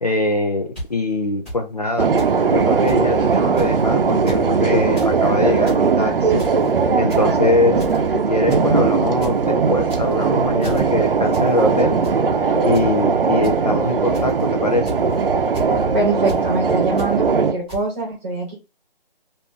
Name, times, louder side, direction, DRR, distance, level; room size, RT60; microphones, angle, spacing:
voice 1, 0.0-2.1 2.5-6.4 6.9-7.8 8.1-12.0 12.6-14.9, left 2 dB, 45° left, 4 dB, 0.4 m, -22 dB
sound 1, 0.8-0.9 1.5-1.6 2.2-2.3 2.6-2.7 2.9-3.0 3.6-3.8 4.1-4.4 4.8-5.1 5.5-5.8 6.4-6.7 7.1-7.4 7.8-8.1 8.5-8.6 9.0-9.3 9.8-10.2 10.6-10.8 11.3-11.5 11.8-12.2 12.7-12.9 13.4-13.5 14.1-14.4 14.8-15.1 15.5-15.7 16.3-16.4 17.0-17.1 17.7-17.8, equal, 10° left, 1.2 m, -32 dB
sound 2, 2.0-17.5, right 5 dB, 70° right, 0.6 m, -19 dB
voice 2, 15.9-18.5, right 3 dB, 15° right, -6 dB, 1.2 m, -23 dB
3.0 x 2.6 x 3.6 m, 0.29 s
hypercardioid pair, 175°, 29 cm